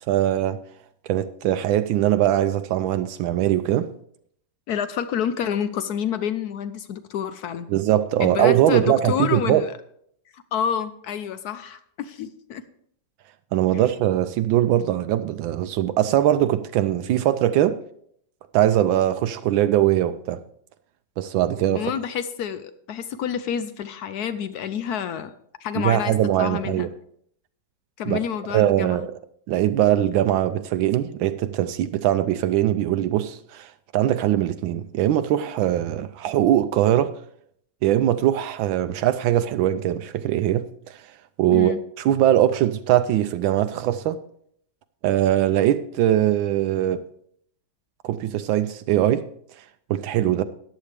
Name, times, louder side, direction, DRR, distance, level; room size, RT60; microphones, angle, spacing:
voice 1, 0.1-0.6 1.0-3.9 7.7-9.6 13.5-17.8 18.5-20.4 21.2-21.9 25.8-26.9 28.1-28.2 28.5-29.1 29.5-37.1 37.8-41.0 41.4-44.2 45.0-47.1 48.0-49.3 49.9-50.4, right 12 dB, 80° right, 1.3 m, -21 dB
voice 2, 4.7-7.7 8.2-9.7 10.3-12.6 13.7-13.8 21.7-25.3 25.6-26.9 28.0-29.1 41.5-41.8, left 8 dB, 75° left, 0.9 m, -28 dB
14.0 x 10.5 x 3.4 m
omnidirectional pair, 2.2 m